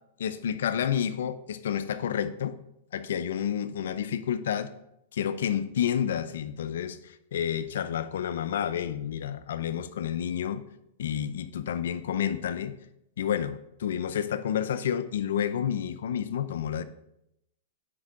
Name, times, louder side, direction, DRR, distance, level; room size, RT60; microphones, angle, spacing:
voice 1, 0.2-2.6 2.9-4.7 5.1-10.6 11.0-12.7 13.2-16.8, left 9 dB, 75° left, 13 dB, 0.6 m, -30 dB
9.7 x 5.4 x 3.8 m, 0.81 s
hypercardioid pair, 135°, 0 cm